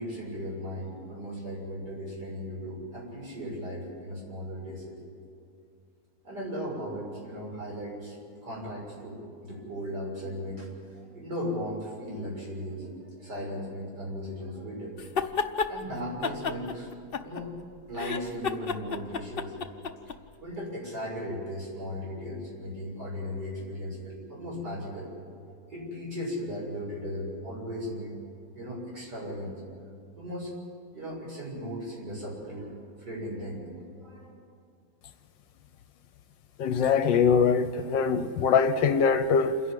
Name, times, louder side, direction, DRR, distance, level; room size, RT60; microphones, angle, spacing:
voice 1, 0.0-5.0 6.2-8.2 8.4-15.2 15.7-16.9 17.2-17.5 17.8-19.9 20.4-25.1 25.4-28.1 28.5-29.5 30.2-30.5 30.9-34.3, equal, 55° right, -5 dB, 7.5 m, -37 dB
sound 1, 15.0-15.7 16.2-17.6 17.9-20.2, left 6 dB, 50° left, 0.6 m, -30 dB
voice 2, 36.6-39.6, left 6 dB, 70° left, 11 dB, 1.5 m, -23 dB
28.0 x 11.0 x 9.1 m, 2.4 s
omnidirectional pair, 2.1 m